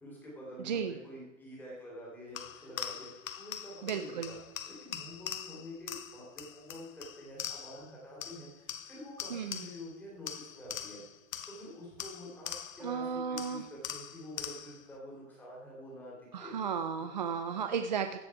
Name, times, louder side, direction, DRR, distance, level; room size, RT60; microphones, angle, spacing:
voice 1, 0.0-4.4 4.6-11.0 11.5-16.6 17.0-17.1, equal, 5° left, -5 dB, 2.8 m, -47 dB
voice 2, 0.6-0.9 3.8-4.3 9.3-9.7 12.8-13.6 16.3-18.2, right 6 dB, 35° right, 7 dB, 0.4 m, -34 dB
sound 1, 2.4-7.9 8.2-9.9 10.3-13.0 13.4-14.9, left 9 dB, 80° left, 1.0 m, -43 dB
16.0 x 6.2 x 4.7 m, 1.1 s
hypercardioid pair, 170°, 39 cm